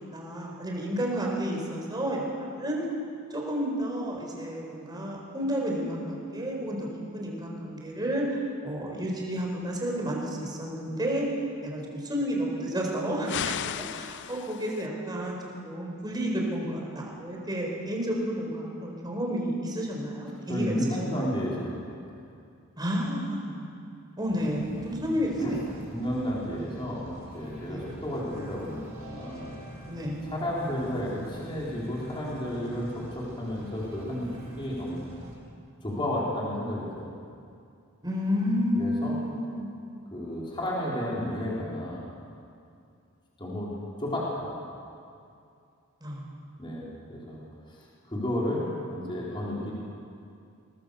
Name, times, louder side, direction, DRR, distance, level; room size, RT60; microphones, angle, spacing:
voice 1, 0.1-2.8 3.3-6.9 7.1-8.4 8.6-11.3 11.6-15.4 15.6-21.3 22.8-23.7 24.2-25.6 27.6-27.8 29.9-30.2 38.0-39.7 46.0-46.4, equal, 20° right, -1 dB, 4.6 m, -31 dB
sound 1, 13.3-14.9, left 10 dB, 55° left, 0.4 m, -34 dB
voice 2, 20.5-21.9 25.4-25.6 25.9-29.5 30.2-35.0 35.8-37.1 38.8-39.2 40.1-42.0 43.4-43.7 44.0-44.6 46.6-47.4 47.7-49.7, equal, 25° left, -6 dB, 4.2 m, -32 dB
sound 2, 24.3-35.4, equal, 75° right, 7.3 m, -45 dB
22.5 x 19.5 x 7.0 m, 2.5 s
head